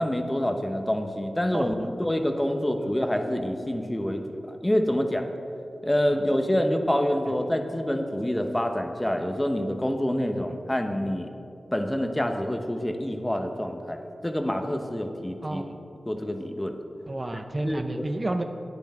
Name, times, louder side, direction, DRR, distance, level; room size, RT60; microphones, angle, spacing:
voice 1, 0.0-5.3 5.8-11.3 11.7-15.6 16.0-16.7 17.6-18.1, equal, 15° left, 5 dB, 0.9 m, -27 dB
voice 2, 15.4-15.8 17.1-18.4, right 2 dB, 35° right, 6 dB, 0.5 m, -31 dB
10.0 x 9.3 x 4.4 m, 2.6 s
cardioid pair, 55°, 0 cm